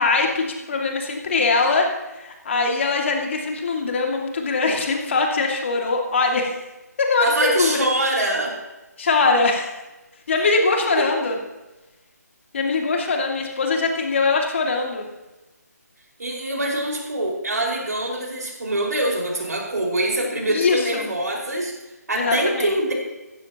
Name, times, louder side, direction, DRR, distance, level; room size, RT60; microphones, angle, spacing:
voice 1, 0.0-6.6 7.0-7.9 9.0-9.8 10.3-11.4 12.5-15.0 20.5-21.1 22.2-22.7, left 3 dB, 45° left, 2 dB, 2.4 m, -22 dB
voice 2, 7.2-8.6 11.0-11.1 16.2-21.7 22.1-22.9, right 1 dB, 70° right, -1 dB, 5.4 m, -24 dB
16.0 x 16.0 x 3.0 m, 1.1 s
figure-of-eight pair, 155°, 9 cm